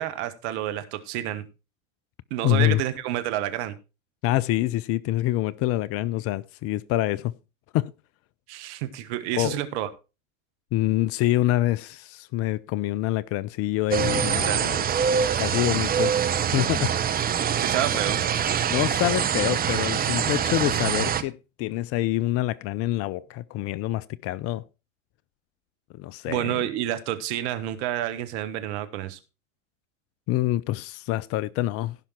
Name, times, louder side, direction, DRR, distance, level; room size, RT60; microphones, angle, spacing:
voice 1, 0.0-1.4 2.3-3.8 8.5-9.9 14.1-14.7 17.5-18.2 26.3-29.2, right 12 dB, 55° right, 1.7 m, -29 dB
voice 2, 2.4-2.8 4.2-7.3 7.7-7.9 9.3-9.6 10.7-14.8 15.4-16.1 16.5-17.2 18.7-24.6 26.0-26.6 30.3-32.0, left 15 dB, 35° left, 0.5 m, -26 dB
sound 1, 13.9-21.2, right 8 dB, 20° right, 1.0 m, -24 dB
16.0 x 5.7 x 4.3 m
hypercardioid pair, 90°, 40 cm